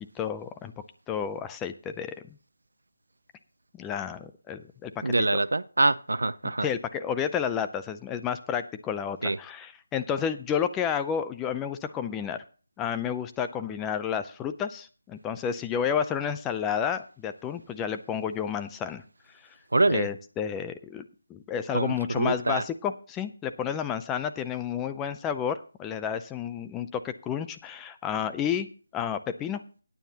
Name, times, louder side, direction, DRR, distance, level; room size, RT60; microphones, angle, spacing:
voice 1, 0.2-0.7 1.1-2.1 3.7-5.3 6.6-12.4 12.8-19.0 19.9-28.7 28.9-29.6, left 8 dB, 10° left, 0.4 m, -31 dB
voice 2, 5.0-6.7 9.2-9.4 19.7-20.1 21.7-22.6, right 2 dB, 90° right, 0.6 m, -25 dB
16.0 x 9.3 x 2.8 m
figure-of-eight pair, 170°, 0 cm